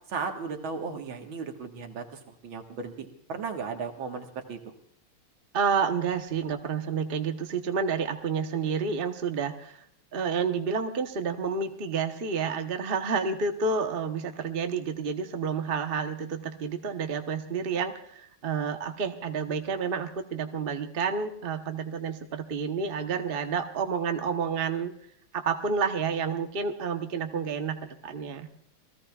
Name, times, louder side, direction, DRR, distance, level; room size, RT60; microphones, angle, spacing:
voice 1, 0.1-4.7, right 5 dB, 65° right, 4 dB, 2.2 m, -36 dB
voice 2, 5.5-9.8 10.1-24.9 25.3-28.5, right 5 dB, 40° right, 5 dB, 0.8 m, -30 dB
28.0 x 18.0 x 2.4 m, 0.68 s
omnidirectional pair, 2.4 m